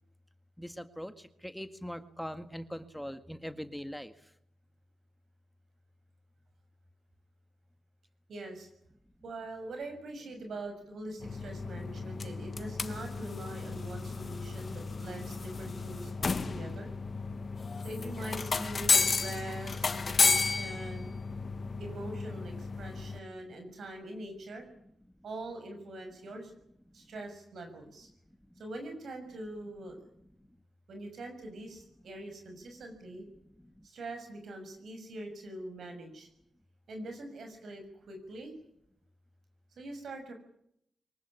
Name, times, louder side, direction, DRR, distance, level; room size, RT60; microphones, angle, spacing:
voice 1, 0.6-4.1, equal, 5° left, 10 dB, 1.8 m, -41 dB
voice 2, 8.3-8.7 9.2-16.9 17.8-21.1 21.8-24.6 25.2-26.5 26.9-28.1 28.6-30.0 30.9-33.2 33.8-36.3 36.9-38.5 39.8-40.3, right 2 dB, 75° right, 5 dB, 6.4 m, -43 dB
sound 1, 11.2-23.2, left 4 dB, 50° left, 1.4 m, -32 dB
24.0 x 19.0 x 9.9 m, 0.74 s
cardioid pair, 55°, 0 cm